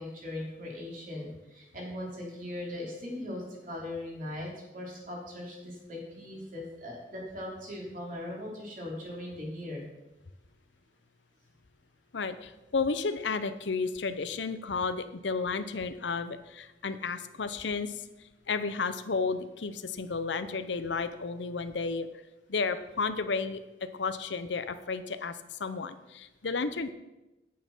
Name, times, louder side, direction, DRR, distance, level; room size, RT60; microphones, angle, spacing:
voice 1, 0.0-9.9, left 1 dB, 50° right, -2 dB, 3.2 m, -39 dB
voice 2, 12.1-18.0 18.5-22.1 22.5-26.9, left 4 dB, 90° left, 11 dB, 0.7 m, -32 dB
9.4 x 8.6 x 5.4 m, 1.0 s
head